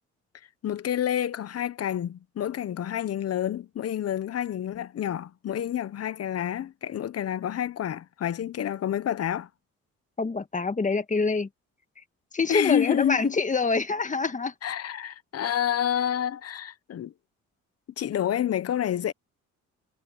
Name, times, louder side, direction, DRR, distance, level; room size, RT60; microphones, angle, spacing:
voice 1, 0.6-9.5 12.5-13.3 14.6-17.1 18.0-19.1, left 10 dB, 55° left, 0.9 m, -28 dB
voice 2, 10.2-11.5 12.3-14.5, left 4 dB, 25° left, 1.6 m, -26 dB
cardioid pair, 90°, 30 cm